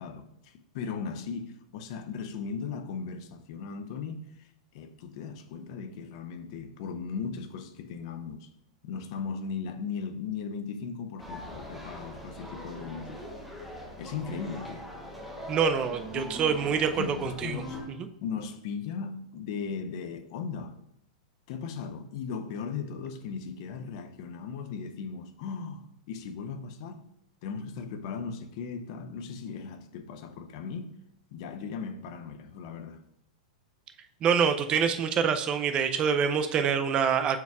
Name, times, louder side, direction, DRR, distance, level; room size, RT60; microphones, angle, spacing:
voice 1, 0.0-8.5 8.8-13.2 14.0-14.9 16.1-17.8 18.2-20.8 21.5-27.1 27.4-31.0 31.3-33.0, left 5 dB, 50° left, 0.6 m, -37 dB
sound 1, 11.2-17.8, equal, ahead, 1.7 m, -41 dB
voice 2, 15.5-17.6 34.2-37.4, right 7 dB, 25° right, 0.4 m, -26 dB
6.0 x 4.6 x 3.5 m
supercardioid pair, 150°, 4 cm